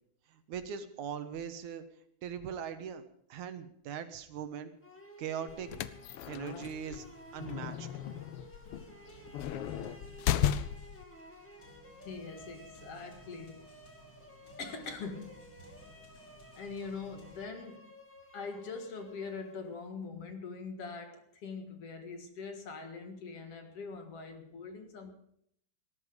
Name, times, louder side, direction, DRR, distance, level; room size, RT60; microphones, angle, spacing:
voice 1, 0.3-1.8 2.2-3.0 3.3-4.7 5.2-5.7 6.3-7.1 7.3-7.9, right 8 dB, 80° right, 9 dB, 2.6 m, -40 dB
sound 1, 4.8-19.9, equal, 5° left, 1.4 m, -54 dB
sound 2, 5.5-11.0, left 11 dB, 80° left, 1.3 m, -35 dB
sound 3, 8.7-17.4, equal, 35° left, 4.1 m, -58 dB
voice 2, 12.0-13.6 14.6-15.4 16.6-17.9 18.3-25.1, left 4 dB, 55° left, 6 dB, 2.6 m, -43 dB
19.5 x 12.0 x 5.2 m, 0.67 s
omnidirectional pair, 3.4 m